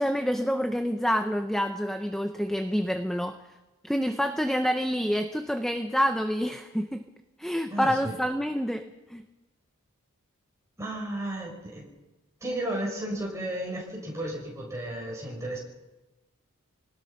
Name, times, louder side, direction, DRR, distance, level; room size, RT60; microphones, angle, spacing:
voice 1, 0.0-3.3 3.8-7.0 7.4-8.8 9.1-9.2, equal, ahead, 7 dB, 0.8 m, -27 dB
voice 2, 7.7-8.2 10.8-11.9 12.4-15.6, right 1 dB, 15° right, -2 dB, 6.6 m, -33 dB
26.5 x 19.0 x 5.9 m, 1.1 s
head